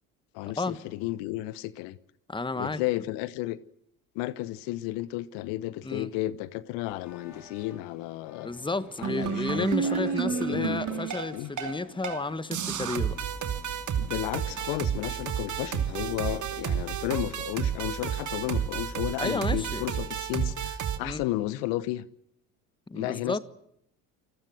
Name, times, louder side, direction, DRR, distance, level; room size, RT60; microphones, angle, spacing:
voice 1, 0.3-2.0 2.5-3.6 4.1-8.5 9.0-11.1 11.3-11.5 14.0-22.0 22.9-23.4, left 16 dB, 70° left, 1.1 m, -33 dB
voice 2, 2.3-2.8 5.8-6.1 8.4-13.2 19.2-19.8 21.0-21.2 22.9-23.4, left 3 dB, 10° left, 1.5 m, -32 dB
sound 1, 6.8-16.9, left 4 dB, 45° left, 7.6 m, -54 dB
sound 2, 9.0-11.7 12.0-12.2 12.5-21.0, right 8 dB, 45° right, 2.7 m, -31 dB
29.0 x 20.5 x 7.8 m
hypercardioid pair, 75°, 43 cm